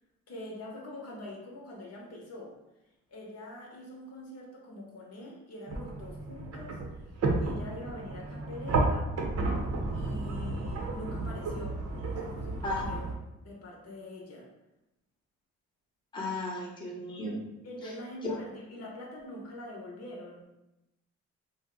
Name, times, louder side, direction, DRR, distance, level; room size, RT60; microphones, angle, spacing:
voice 1, 0.3-2.6 3.1-9.2 9.9-11.8 12.1-13.0 13.4-14.5 17.6-20.5, left 1 dB, 55° left, -1 dB, 0.8 m, -44 dB
sound 1, 5.7-13.1, right 2 dB, 55° right, 0.6 m, -32 dB
voice 2, 16.1-17.4 17.8-17.9 18.2-18.4, left 2 dB, 15° left, -3 dB, 0.8 m, -34 dB
2.5 x 2.1 x 3.7 m, 0.94 s
cardioid pair, 90°, 30 cm